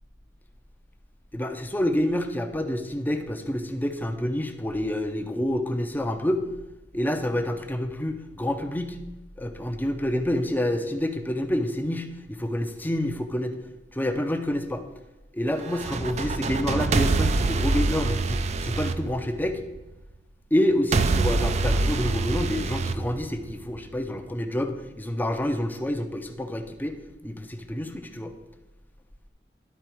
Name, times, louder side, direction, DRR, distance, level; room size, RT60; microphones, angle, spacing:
voice 1, 1.3-6.4 6.9-9.0 9.4-13.6 13.9-14.8 15.3-19.6 20.5-28.3, left 1 dB, 10° left, 7 dB, 0.6 m, -28 dB
sound 1, 15.6-19.8 20.9-23.8, right 3 dB, 35° right, 0.4 m, -25 dB
11.5 x 4.6 x 4.5 m, 1.0 s
head